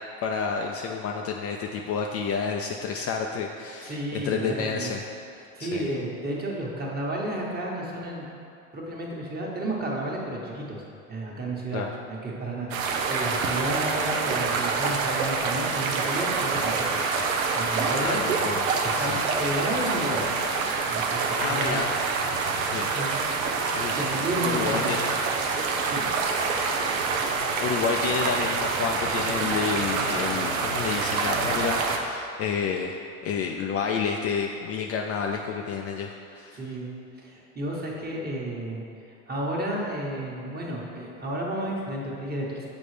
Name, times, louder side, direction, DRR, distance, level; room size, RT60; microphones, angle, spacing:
voice 1, 0.2-5.0 5.6-5.9 11.7-11.9 18.0-18.7 19.0-19.2 21.4-21.9 22.6-23.4 23.7-23.9 24.4-25.1 27.6-36.6, left 6 dB, 40° left, 2 dB, 0.4 m, -30 dB
voice 2, 3.8-4.9 5.6-8.3 8.7-10.8 11.1-17.0 17.5-18.2 18.8-20.2 20.8-21.9 22.9-23.1 23.9-24.9 25.9-26.0 29.4-29.6 36.5-36.9 37.2-38.8 39.3-42.7, right 1 dB, 25° right, -3 dB, 1.3 m, -32 dB
sound 1, 12.7-32.0, right 4 dB, 85° right, 0.6 m, -26 dB
7.1 x 4.1 x 3.3 m, 2.5 s
hypercardioid pair, 80°, 40 cm